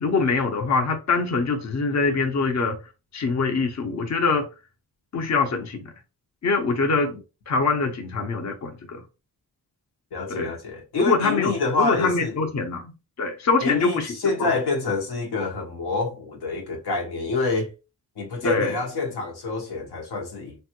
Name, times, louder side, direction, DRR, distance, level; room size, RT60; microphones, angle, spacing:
voice 1, 0.0-2.8 3.1-4.5 5.1-5.9 6.4-7.2 7.5-9.0 10.3-10.5 10.9-11.5 11.8-12.9 13.2-14.1 14.4-14.5 18.4-18.7, left 4 dB, 45° left, 0.7 m, -24 dB
voice 2, 10.1-12.3 13.6-17.7 18.2-20.6, left 3 dB, 80° left, 0.9 m, -27 dB
3.3 x 2.2 x 2.9 m
wide cardioid pair, 85°, 39 cm